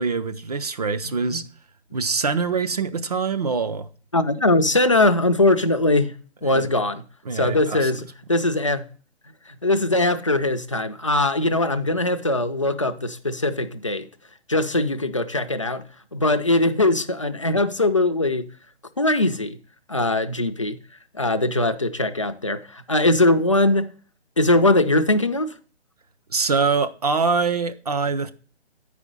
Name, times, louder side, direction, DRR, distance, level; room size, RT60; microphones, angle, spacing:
voice 1, 0.0-1.4 1.9-3.9 6.5-6.7 7.3-7.9 26.3-28.3, right 4 dB, 35° right, 0.6 m, -24 dB
voice 2, 4.1-7.0 7.3-8.9 9.5-14.1 14.5-15.8 16.1-18.5 19.0-19.6 19.9-20.8 21.1-23.9 24.4-25.5, left 2 dB, 30° left, 0.4 m, -21 dB
9.1 x 5.0 x 5.1 m
hypercardioid pair, 155°, 34 cm